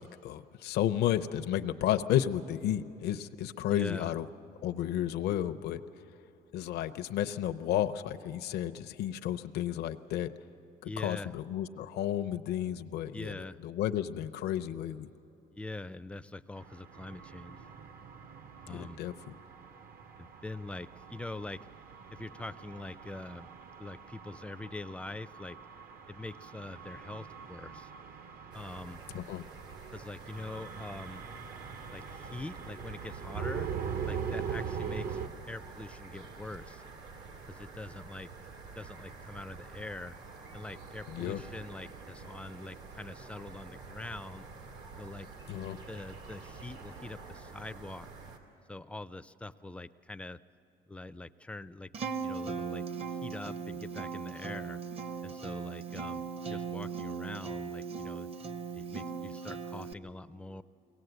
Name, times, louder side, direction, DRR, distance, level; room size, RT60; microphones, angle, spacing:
voice 1, 0.0-4.3 4.6-5.8 6.5-10.3 10.8-15.1 18.7-19.3 29.1-29.4 41.1-41.4 45.5-45.8, left 11 dB, 75° left, 8 dB, 0.7 m, -32 dB
voice 2, 3.7-4.2 10.8-11.3 13.1-13.6 15.5-17.6 18.6-19.0 20.2-21.6 22.1-23.5 23.8-25.6 26.1-27.9 28.5-29.0 29.9-31.2 31.9-33.7 34.0-35.2 35.5-36.8 37.5-38.3 38.8-40.2 40.5-44.4 45.0-45.3 45.9-48.1 48.7-50.4 50.9-51.9 52.2-54.8 55.2-58.3 58.7-60.6, left 2 dB, 5° left, 12 dB, 0.4 m, -43 dB
sound 1, 16.6-35.3, right 7 dB, 60° right, 1.0 m, -42 dB
sound 2, 28.5-48.4, right 4 dB, 80° right, 2.3 m, -49 dB
Acoustic guitar, 51.9-59.9, right 6 dB, 35° right, 0.8 m, -38 dB
23.0 x 18.0 x 8.0 m, 2.7 s
cardioid pair, 110°, 17 cm